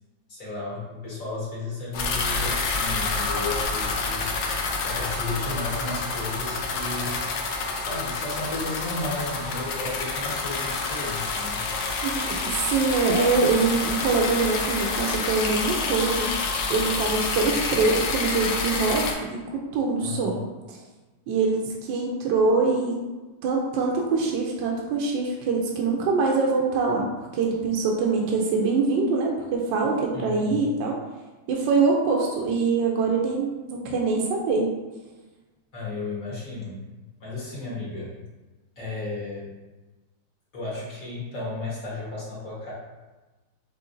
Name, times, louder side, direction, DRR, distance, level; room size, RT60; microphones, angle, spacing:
voice 1, 0.3-4.3 4.8-7.2 7.8-11.6 20.0-20.4 30.1-30.6 35.7-36.8 37.2-38.1 38.8-39.5 40.5-42.7, left 3 dB, 45° left, -7 dB, 1.5 m, -33 dB
sound 1, 1.9-19.1, left 4 dB, 70° left, 0.9 m, -28 dB
voice 2, 12.0-12.4 12.7-16.3 16.7-19.0 19.3-20.4 20.7-20.8 21.3-22.9 23.4-30.9 31.5-34.7, right 4 dB, 75° right, -1 dB, 1.2 m, -24 dB
5.6 x 3.1 x 2.6 m, 1.2 s
omnidirectional pair, 2.2 m